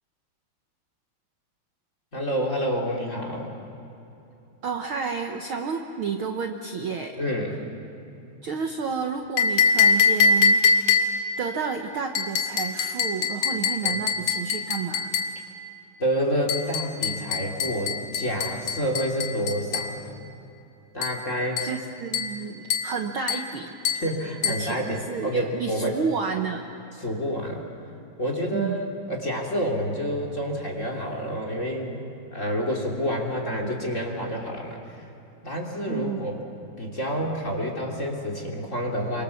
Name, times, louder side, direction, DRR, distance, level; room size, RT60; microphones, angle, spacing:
voice 1, 2.1-3.5 7.2-7.6 13.8-14.0 16.0-20.2 20.9-21.6 24.0-26.0 27.0-27.7 28.2-32.0 32.3-35.1 35.4-36.4 36.8-39.2, equal, 25° left, 1 dB, 3.3 m, -28 dB
voice 2, 4.6-7.2 8.4-10.6 11.4-15.1 21.6-23.7 24.4-26.7 28.5-28.8 35.9-36.2, right 6 dB, 55° right, 4 dB, 1.6 m, -30 dB
sound 1, 9.4-11.3 12.2-15.4 16.5-20.0 21.0-21.2 21.6-21.8 22.1-22.4 22.7-23.0 23.3-23.5 23.9-24.1 24.4-24.7, left 5 dB, 75° left, 3.3 m, -24 dB
29.5 x 24.5 x 7.2 m, 2.9 s
omnidirectional pair, 3.4 m